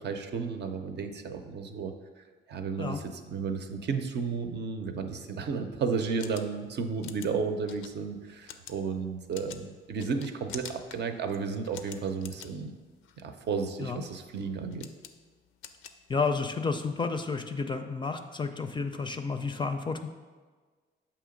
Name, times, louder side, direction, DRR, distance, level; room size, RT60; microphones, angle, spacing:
voice 1, 0.0-1.9 2.5-12.7 13.2-14.9, right 5 dB, 60° right, 6 dB, 0.6 m, -33 dB
sound 1, 6.0-16.6, left 8 dB, 85° left, 0.4 m, -49 dB
voice 2, 16.1-20.1, left 4 dB, 25° left, 7 dB, 0.4 m, -31 dB
7.2 x 2.9 x 5.1 m, 1.4 s
cardioid pair, 90°, 20 cm